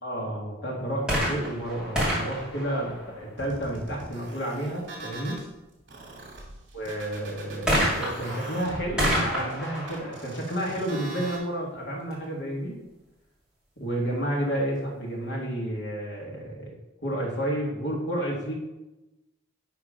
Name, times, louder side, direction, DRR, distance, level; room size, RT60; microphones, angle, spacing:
voice 1, 0.0-5.4 6.7-12.8 13.8-16.7 17.0-18.6, right 1 dB, 60° left, -2 dB, 2.4 m, -31 dB
sound 1, 1.0-3.6 7.7-11.3 12.1-12.2, equal, 5° right, 2.7 m, -29 dB
sound 2, 3.4-5.5 5.9-11.4, right 2 dB, 60° right, 2.3 m, -42 dB
11.0 x 3.9 x 5.2 m, 0.99 s
head